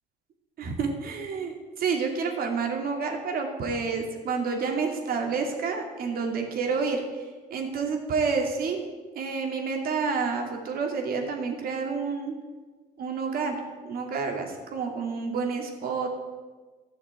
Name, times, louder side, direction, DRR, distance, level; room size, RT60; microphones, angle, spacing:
voice 1, 0.6-7.0 7.5-8.8 9.2-12.3 13.0-16.1, right 5 dB, 60° right, 3 dB, 2.5 m, -29 dB
13.5 x 6.5 x 8.2 m, 1.3 s
cardioid pair, 110°, 17 cm